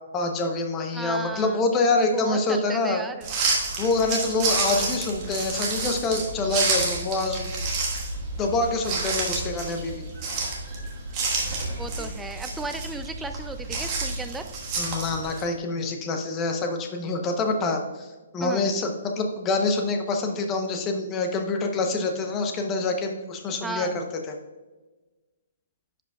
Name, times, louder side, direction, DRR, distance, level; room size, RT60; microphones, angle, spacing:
voice 1, 0.1-3.0 3.8-7.6 8.4-9.9 14.8-18.1 18.3-24.0, left 3 dB, 15° left, 4 dB, 0.7 m, -26 dB
voice 2, 0.9-1.6 2.1-3.3 11.7-14.5 18.4-18.7 23.6-24.0, right 3 dB, 5° right, 7 dB, 0.3 m, -35 dB
sound 1, 3.2-15.4, right 3 dB, 25° right, 1.4 m, -29 dB
11.0 x 5.0 x 2.3 m, 1.2 s
hypercardioid pair, 165°, 0 cm